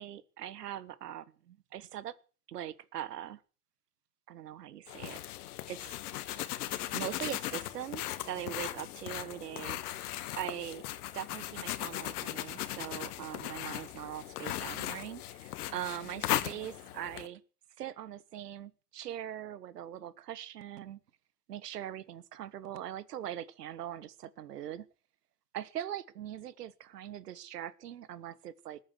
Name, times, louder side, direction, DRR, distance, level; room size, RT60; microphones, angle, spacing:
voice 1, 0.0-2.1 2.5-3.4 4.3-5.2 5.7-5.9 6.9-10.8 11.1-17.4 17.8-21.0 21.5-24.9 25.5-28.8, right 11 dB, 75° right, 18 dB, 1.4 m, -41 dB
sound 1, 4.9-17.3, left 14 dB, 70° left, 1.7 m, -38 dB
20.0 x 9.0 x 8.0 m, 0.39 s
hypercardioid pair, 85°, 47 cm